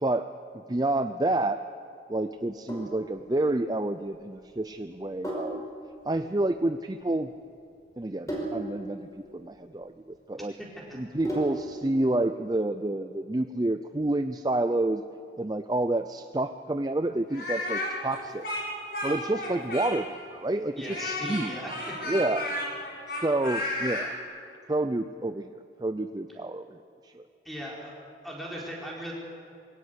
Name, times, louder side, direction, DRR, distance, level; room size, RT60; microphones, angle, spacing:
voice 1, 0.5-1.6 2.1-5.6 6.0-7.3 8.0-10.5 10.9-15.0 15.4-18.5 19.0-21.5 22.1-22.5 23.1-24.1 24.7-27.2, right 2 dB, 25° right, 9 dB, 0.5 m, -29 dB
Sink (filling or washing), 2.4-11.8, right 1 dB, 20° left, 5.2 m, -38 dB
voice 2, 10.3-11.0 20.7-21.7 22.0-22.1 27.4-27.9 28.2-29.1, equal, ahead, -3 dB, 4.6 m, -39 dB
Speech, 17.3-20.2 20.8-24.1, left 1 dB, 60° left, 6.4 m, -32 dB
23.0 x 18.0 x 8.2 m, 2.6 s
head